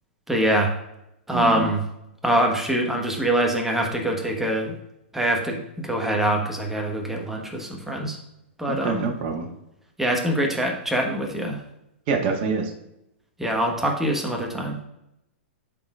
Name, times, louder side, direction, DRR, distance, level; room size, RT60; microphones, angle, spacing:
voice 1, 0.3-0.7 1.3-1.8 2.2-4.7 5.1-8.2 8.6-9.1 10.0-11.6 13.4-14.8, right 1 dB, 5° right, 1 dB, 1.3 m, -24 dB
voice 2, 1.3-1.7 8.7-9.5 12.1-12.7, right 4 dB, 45° right, 1 dB, 1.5 m, -25 dB
11.5 x 4.2 x 2.5 m, 0.84 s
hypercardioid pair, 120°, 7 cm